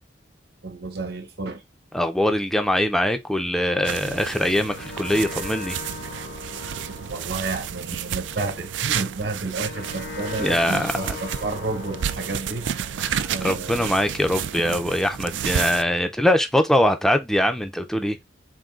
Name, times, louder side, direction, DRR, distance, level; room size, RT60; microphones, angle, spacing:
voice 1, 0.6-1.6 5.1-5.2 7.1-12.7 13.3-14.0, right 3 dB, 60° right, 1.1 m, -31 dB
voice 2, 1.9-5.8 10.4-11.2 13.0-18.2, left 1 dB, ahead, 0.4 m, -22 dB
sound 1, 3.8-15.8, right 9 dB, 85° right, 0.4 m, -31 dB
sound 2, 4.3-15.2, left 6 dB, 55° left, 0.8 m, -40 dB
3.8 x 2.6 x 3.6 m
head